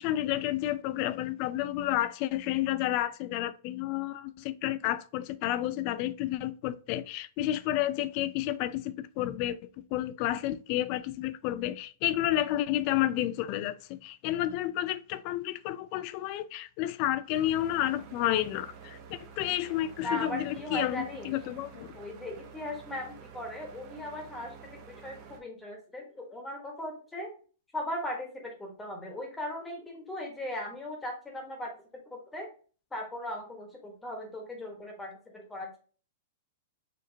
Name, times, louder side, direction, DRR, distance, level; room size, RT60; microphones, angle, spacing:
voice 1, 0.0-9.6 9.9-22.0, left 13 dB, 40° left, 0.3 m, -31 dB
sound 1, 17.3-25.4, right 6 dB, 40° right, 1.0 m, -49 dB
voice 2, 20.0-21.4 21.9-27.3 27.7-32.5 32.9-35.8, left 1 dB, 10° left, 1.2 m, -38 dB
4.9 x 2.9 x 2.7 m
hypercardioid pair, 145°, 0 cm